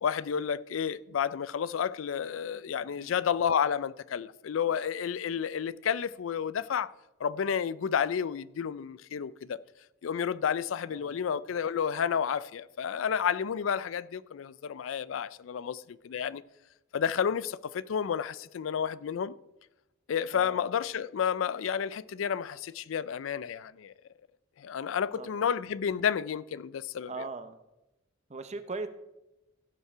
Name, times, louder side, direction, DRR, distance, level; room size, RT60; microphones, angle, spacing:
voice 1, 0.0-6.9 7.2-9.6 10.0-16.4 16.9-19.3 20.1-23.9 24.6-27.1, left 7 dB, 85° left, 0.4 m, -31 dB
voice 2, 2.8-3.1 10.9-11.2 20.3-20.6 25.2-25.3 27.1-27.6 28.3-28.9, right 3 dB, 35° right, 0.8 m, -39 dB
16.0 x 5.5 x 4.9 m
head